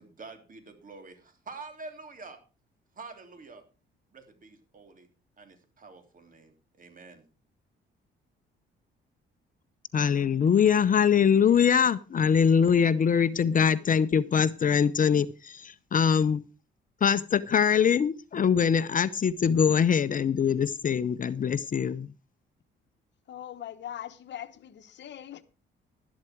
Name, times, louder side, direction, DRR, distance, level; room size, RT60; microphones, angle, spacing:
voice 1, 0.0-2.4 3.0-3.6 4.1-5.1 5.4-7.3, right 3 dB, 45° right, 3.3 m, -47 dB
voice 2, 9.9-16.4 17.0-22.1, left 7 dB, 40° left, 0.7 m, -23 dB
voice 3, 23.3-25.4, left 11 dB, 65° left, 1.1 m, -41 dB
12.0 x 11.5 x 4.6 m
cardioid pair, 90°, 20 cm